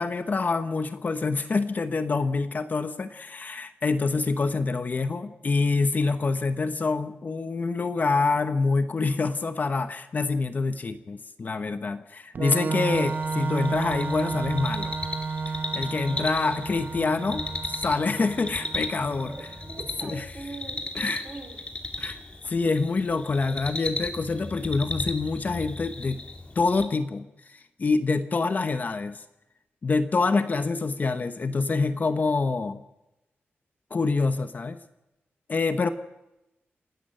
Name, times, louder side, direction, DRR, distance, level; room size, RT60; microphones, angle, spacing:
voice 1, 0.0-14.9 15.5-19.3 20.0-20.2 20.9-21.2 22.0-26.2 26.5-29.2 29.8-32.8 33.9-34.8 35.5-35.9, left 4 dB, 45° left, 10 dB, 1.0 m, -26 dB
Organ, 12.3-19.9, right 4 dB, 55° right, 0.9 m, -32 dB
sound 1, 12.9-26.9, left 2 dB, 25° left, 2.4 m, -36 dB
voice 2, 16.2-16.6 19.2-21.6, right 3 dB, 35° right, 4 dB, 3.8 m, -42 dB
28.0 x 12.0 x 7.8 m, 0.95 s
wide cardioid pair, 140°, 4 cm